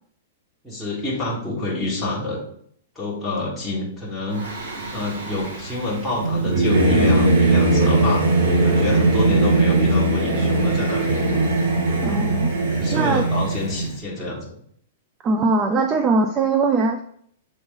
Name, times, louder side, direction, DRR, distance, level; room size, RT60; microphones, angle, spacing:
voice 1, 0.6-2.4 2.9-4.4 4.9-8.3 8.6-11.3 12.8-14.4, left 2 dB, ahead, -10 dB, 1.6 m, -27 dB
Singing / Musical instrument, 4.3-13.9, right 2 dB, 85° right, 1.6 m, -20 dB
voice 2, 12.0-13.2 15.2-17.0, right 3 dB, 20° right, 6 dB, 0.3 m, -21 dB
6.9 x 3.8 x 3.9 m, 0.65 s
supercardioid pair, 165°, 0 cm